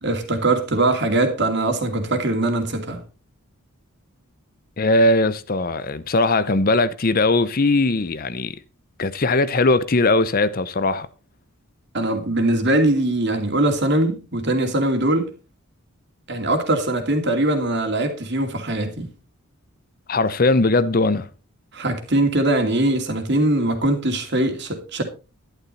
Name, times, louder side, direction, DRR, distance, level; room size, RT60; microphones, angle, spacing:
voice 1, 0.0-3.0 11.9-15.3 16.3-19.1 21.7-25.0, right 2 dB, 50° right, 2.6 m, -21 dB
voice 2, 4.8-8.6 9.0-11.1 20.1-21.3, left 2 dB, 40° left, 0.7 m, -19 dB
11.5 x 11.5 x 4.2 m
head